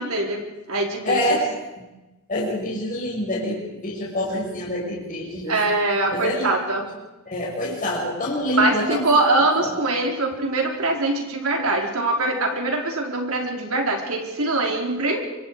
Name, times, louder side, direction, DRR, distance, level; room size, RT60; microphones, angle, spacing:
voice 1, 0.0-1.4 5.5-6.9 8.5-15.2, right 2 dB, 75° right, 2 dB, 4.2 m, -23 dB
voice 2, 1.0-1.5 2.3-5.6 6.1-6.5 7.3-9.1 9.6-9.7, left 1 dB, 35° left, -3 dB, 5.6 m, -26 dB
25.0 x 24.5 x 4.9 m, 1.0 s
head